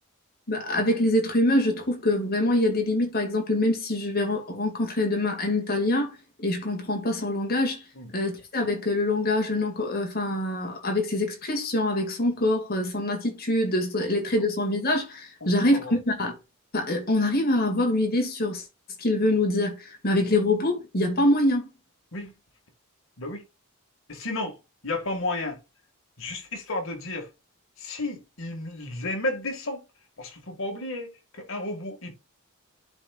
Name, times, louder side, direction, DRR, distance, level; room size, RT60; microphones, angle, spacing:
voice 1, 0.5-6.1 6.4-7.8 8.1-16.3 16.7-18.6 19.0-21.7, left 1 dB, 45° left, 2.2 m, -25 dB
voice 2, 15.4-15.9 22.1-22.3 23.2-23.4 24.1-24.6 24.8-25.6 26.2-27.3 27.8-29.8 30.2-32.1, left 2 dB, 65° left, 2.0 m, -32 dB
11.5 x 4.5 x 2.5 m
head